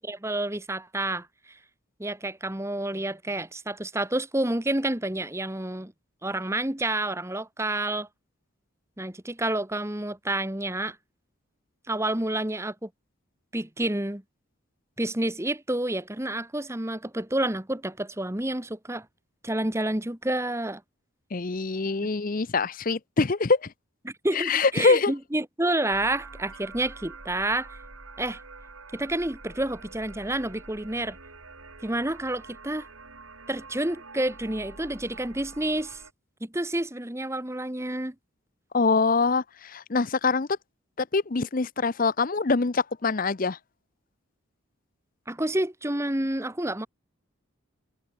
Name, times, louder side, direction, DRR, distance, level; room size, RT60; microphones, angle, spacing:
voice 1, 0.0-1.6 2.0-5.9 6.2-8.1 9.0-11.0 11.9-12.9 13.5-14.2 15.0-19.1 19.4-20.8 24.0-27.8 28.2-28.4 28.9-31.2 31.8-32.9 33.5-36.0 36.4-38.1 45.3-46.9, right 1 dB, 15° right, 1.2 m, -29 dB
voice 2, 21.3-23.7 24.3-25.1 38.7-40.5 41.0-43.6, left 4 dB, 40° left, 0.6 m, -24 dB
sound 1, 25.9-36.1, right 3 dB, 75° right, 5.7 m, -46 dB
head